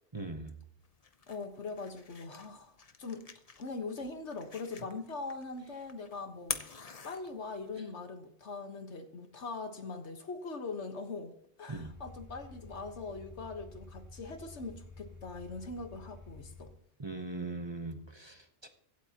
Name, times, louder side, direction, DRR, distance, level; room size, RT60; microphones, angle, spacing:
voice 1, 0.1-0.5 11.7-11.9 17.0-18.4 18.6-18.7, right 2 dB, 25° right, 6 dB, 1.0 m, -39 dB
sound 1, 0.8-7.8, left 5 dB, 35° left, 0.9 m, -46 dB
voice 2, 1.3-3.3 3.6-6.6 7.0-11.3 11.6-16.7, left 3 dB, 80° left, 6 dB, 1.7 m, -41 dB
sound 2, 11.7-16.7, left 2 dB, 15° left, 1.8 m, -51 dB
24.5 x 8.2 x 2.9 m, 0.69 s
omnidirectional pair, 1.1 m